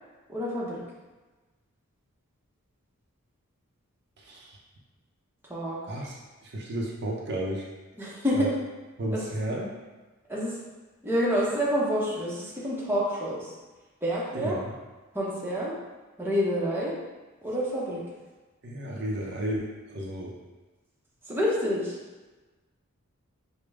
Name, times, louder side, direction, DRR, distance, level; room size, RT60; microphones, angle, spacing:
voice 1, 0.3-0.8 5.5-5.8 8.0-8.5 9.1-9.2 10.3-10.5 11.0-13.5 14.0-14.6 15.1-15.8 16.2-17.0 17.4-18.0 21.3-22.0, equal, 10° right, -6 dB, 0.8 m, -28 dB
voice 2, 4.2-4.6 5.9-6.1 6.4-7.7 8.3-8.5 9.0-9.8 14.3-14.7 18.6-20.3, right 1 dB, 50° right, -2 dB, 0.7 m, -32 dB
5.1 x 2.2 x 4.7 m, 1.2 s
head